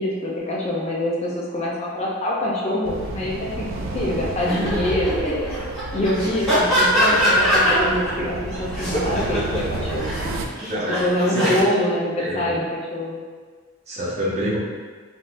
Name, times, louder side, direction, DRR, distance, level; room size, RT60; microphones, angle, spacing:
voice 1, 0.0-5.5 5.9-10.1 10.9-13.2, left 1 dB, 30° left, -4 dB, 0.4 m, -25 dB
sound 1, 2.8-10.5, right 2 dB, 70° right, 0.3 m, -31 dB
sound 2, 4.4-8.1 8.5-11.6, equal, ahead, 1.2 m, -22 dB
voice 2, 10.6-11.6 12.2-12.5 13.9-14.6, equal, 35° right, -6 dB, 0.6 m, -27 dB
3.7 x 2.5 x 2.4 m, 1.5 s
head